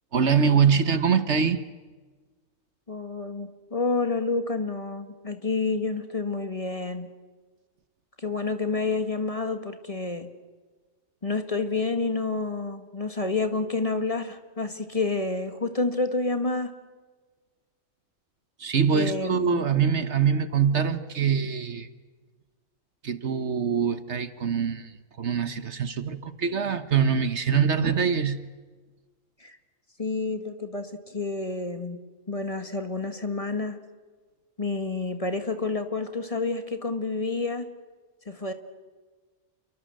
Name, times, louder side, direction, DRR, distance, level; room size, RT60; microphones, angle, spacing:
voice 1, 0.1-1.6 18.6-21.9 23.0-28.5, right 6 dB, 60° right, 12 dB, 1.4 m, -24 dB
voice 2, 2.9-7.1 8.2-10.3 11.2-16.7 18.9-19.6 29.4-29.6 30.0-32.0 32.3-33.8 34.6-37.6 38.3-38.5, left 3 dB, 25° left, 8 dB, 1.8 m, -29 dB
29.0 x 23.5 x 7.7 m, 1.4 s
omnidirectional pair, 1.4 m